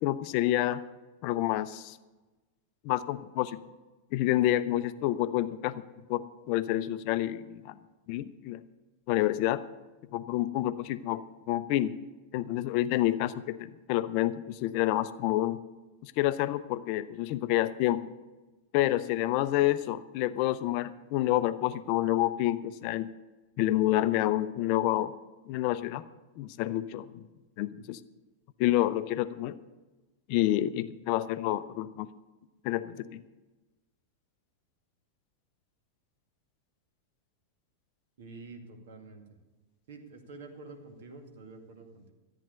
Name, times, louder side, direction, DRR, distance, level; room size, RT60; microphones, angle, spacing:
voice 1, 0.0-0.8 1.2-2.0 2.8-3.6 4.1-5.8 6.1-7.7 8.1-8.6 9.1-9.6 10.1-11.9 12.3-15.6 16.0-18.0 18.7-23.1 23.6-25.1 25.5-26.0 26.4-27.2 27.6-28.0 28.6-29.6 30.3-32.1 32.6-33.2, left 14 dB, 45° left, 14 dB, 0.5 m, -28 dB
voice 2, 38.2-39.2 39.9-42.1, right 3 dB, 55° right, 4 dB, 2.1 m, -48 dB
13.5 x 9.2 x 6.6 m, 1.2 s
figure-of-eight pair, 90°, 0 cm